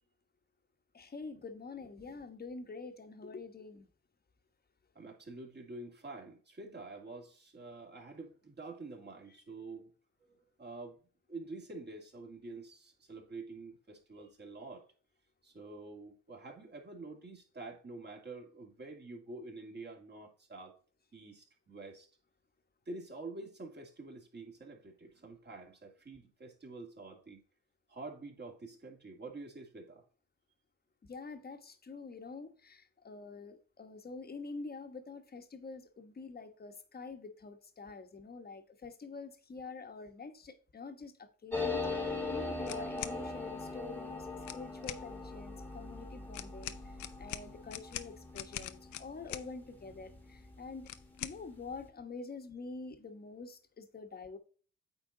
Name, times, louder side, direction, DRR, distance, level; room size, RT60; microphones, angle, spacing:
voice 1, 0.9-3.9 31.0-44.3 44.5-46.8 47.2-50.9 51.2-54.4, left 4 dB, 30° left, 1.3 m, -46 dB
voice 2, 4.9-9.9 10.6-11.0 11.3-14.9 15.4-20.7 21.1-22.1 22.9-27.4 27.9-30.0, right 3 dB, 35° right, 2.4 m, -47 dB
sound 1, 41.5-50.7 51.0-51.1 51.3-51.8, left 3 dB, 5° left, 1.5 m, -40 dB
sound 2, 42.6-43.2 44.4-45.0 46.3-49.5 50.8-51.4, left 13 dB, 75° left, 0.7 m, -43 dB
8.9 x 4.0 x 3.8 m
cardioid pair, 90°, 30 cm